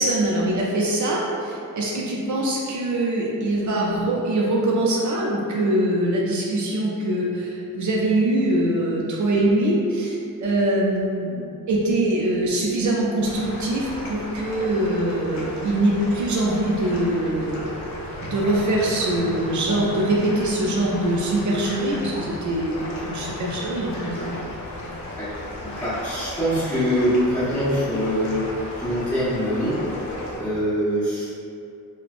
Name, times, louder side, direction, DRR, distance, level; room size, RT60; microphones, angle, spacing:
voice 1, 0.0-17.6 18.2-24.4, right 1 dB, 60° right, -3 dB, 0.5 m, -23 dB
sound 1, 13.2-30.4, left 1 dB, 55° left, 0.7 m, -35 dB
voice 2, 25.6-28.5 28.8-29.8 30.3-31.3, equal, 5° left, -14 dB, 1.2 m, -24 dB
4.1 x 2.1 x 2.4 m, 2.6 s
wide cardioid pair, 180°, 34 cm